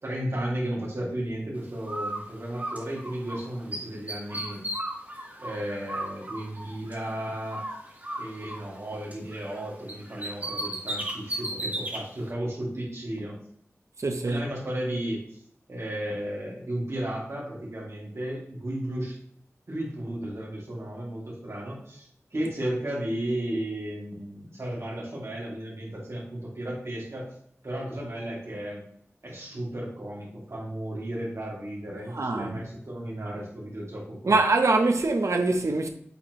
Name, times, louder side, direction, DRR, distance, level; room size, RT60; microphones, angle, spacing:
voice 1, 0.0-4.6 5.4-7.6 8.2-13.4 14.2-15.2 15.7-19.2 19.7-27.3 27.6-28.8 29.2-34.4, right 1 dB, 65° right, 2.6 m, -34 dB
Bird, 1.8-3.4 3.7-7.2 7.5-9.6 9.9-12.0, right 1 dB, 30° right, 1.5 m, -35 dB
voice 2, 14.0-14.4 32.1-32.6 34.3-35.9, right 3 dB, 85° right, 0.9 m, -23 dB
8.2 x 4.4 x 3.1 m
wide cardioid pair, 65°, 5 cm